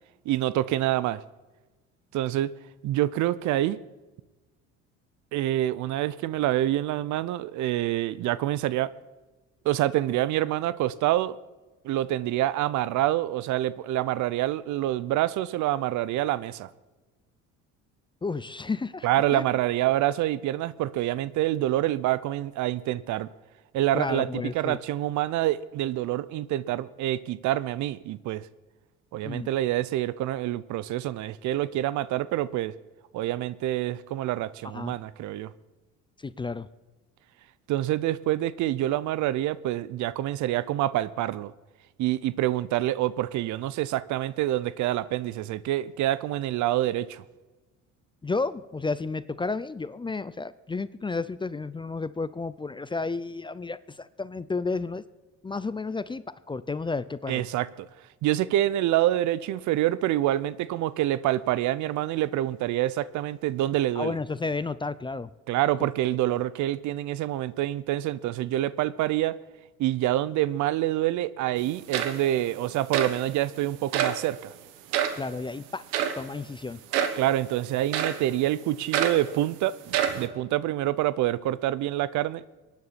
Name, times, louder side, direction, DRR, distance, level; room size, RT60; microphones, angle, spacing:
voice 1, 0.3-1.2 2.1-2.5 2.8-3.8 5.3-8.9 9.6-11.3 11.8-16.7 19.0-23.3 23.7-28.4 29.1-32.7 33.1-35.5 37.7-41.5 42.0-47.2 57.3-57.9 58.2-64.2 65.5-69.3 69.8-74.5 77.2-79.7 80.2-82.4, right 14 dB, 60° right, 0.7 m, -26 dB
voice 2, 18.2-19.1 19.3-19.5 23.9-24.8 29.2-29.5 34.7-34.9 36.2-36.7 48.2-55.0 55.4-57.4 64.0-65.3 66.3-66.4 75.2-75.8 76.2-76.8, left 3 dB, 15° left, 0.5 m, -32 dB
sound 1, 71.6-71.7 71.9-72.4 72.9-73.2 73.9-74.2 74.9-75.2 75.9-76.2 76.9-77.2 77.9-78.3 78.9-79.3 79.9-80.3, right 9 dB, 85° right, 1.3 m, -27 dB
23.5 x 9.6 x 4.2 m
supercardioid pair, 80°, 32 cm